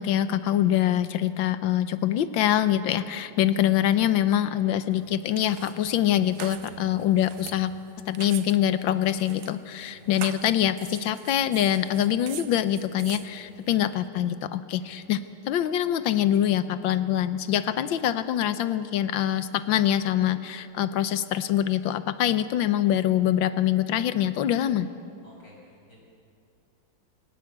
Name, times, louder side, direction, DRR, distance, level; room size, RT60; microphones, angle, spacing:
voice 1, 0.0-7.7 8.1-24.9, left 11 dB, 80° left, 12 dB, 1.6 m, -24 dB
sound 1, 4.9-14.1, right 11 dB, 65° right, 1.1 m, -44 dB
voice 2, 6.6-7.0 9.9-10.1 14.8-14.9 17.8-18.0 25.2-26.0, left 1 dB, 60° left, -2 dB, 7.0 m, -52 dB
23.5 x 18.5 x 8.0 m, 2.6 s
omnidirectional pair, 2.1 m